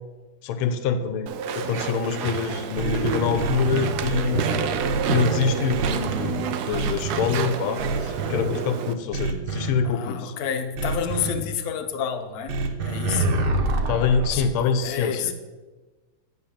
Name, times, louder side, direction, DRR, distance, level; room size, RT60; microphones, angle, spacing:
voice 1, 0.4-4.6 5.1-10.3 13.9-15.3, left 5 dB, 85° left, 1.5 m, -25 dB
Walk footsteps / Chatter / Squeak, 1.3-8.9, right 7 dB, 85° right, 0.8 m, -29 dB
sound 1, 2.8-5.4 5.7-6.3 6.7-7.3 7.8-8.4 9.1-9.7 10.8-11.3 12.5-14.4, right 2 dB, 60° right, 1.4 m, -26 dB
voice 2, 9.8-12.6 12.9-13.3 14.3-14.4 14.8-15.3, left 7 dB, 60° left, 1.0 m, -29 dB
9.8 x 3.8 x 7.2 m
omnidirectional pair, 2.4 m